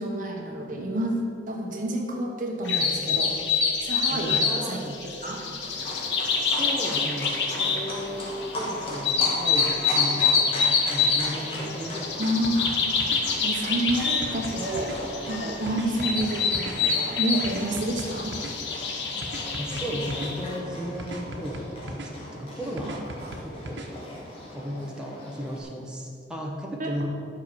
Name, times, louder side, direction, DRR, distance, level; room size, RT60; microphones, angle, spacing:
voice 1, 0.0-3.4 3.8-5.5 12.1-12.6 13.4-15.0 15.3-18.3 22.8-23.3 26.8-27.1, right 1 dB, 50° right, 1 dB, 1.3 m, -29 dB
sound 1, 2.6-20.4, left 5 dB, 75° left, 1.3 m, -26 dB
voice 2, 4.1-5.0 6.3-12.2 19.6-23.0 23.4-23.9 24.5-27.1, equal, 5° right, -2 dB, 1.2 m, -35 dB
Livestock farm animals working animals, 5.6-25.6, left 1 dB, 35° left, 2.1 m, -38 dB
sound 2, 12.2-13.2 13.9-15.0 15.7-16.8 17.4-18.6 19.2-20.3 21.0-22.1 22.8-23.9, right 1 dB, 90° right, 1.1 m, -38 dB
10.5 x 6.1 x 6.8 m, 2.5 s
head